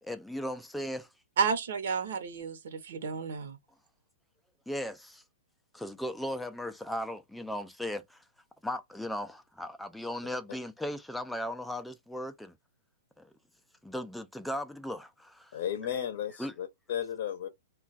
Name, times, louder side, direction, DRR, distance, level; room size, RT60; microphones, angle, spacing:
voice 1, 0.0-1.1 4.7-5.2 5.7-8.2 8.6-12.5 13.2-13.3 13.8-15.6 16.4-16.5, left 1 dB, ahead, 0.3 m, -37 dB
voice 2, 1.4-3.6, right 6 dB, 70° right, 0.8 m, -31 dB
voice 3, 15.5-17.5, left 9 dB, 55° left, 0.6 m, -34 dB
2.3 x 2.2 x 3.9 m
hypercardioid pair, 160°, 0 cm